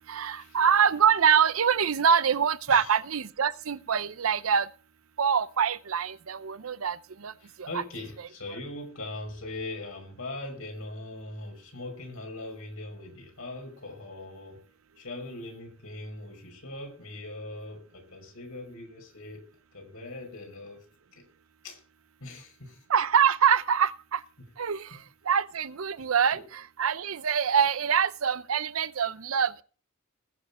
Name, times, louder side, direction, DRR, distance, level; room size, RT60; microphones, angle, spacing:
voice 1, 0.1-4.7 5.2-7.0 7.2-7.3 7.6-7.7 22.9-24.2 24.6-24.9 25.3-29.6, right 7 dB, 75° right, 0.7 m, -25 dB
voice 2, 7.4-14.6 15.0-19.4 19.7-20.8 21.1-21.2 21.6-21.8 22.2-22.8 24.9-25.0 26.3-26.4, left 2 dB, 75° left, 6.0 m, -41 dB
20.0 x 7.3 x 4.3 m
head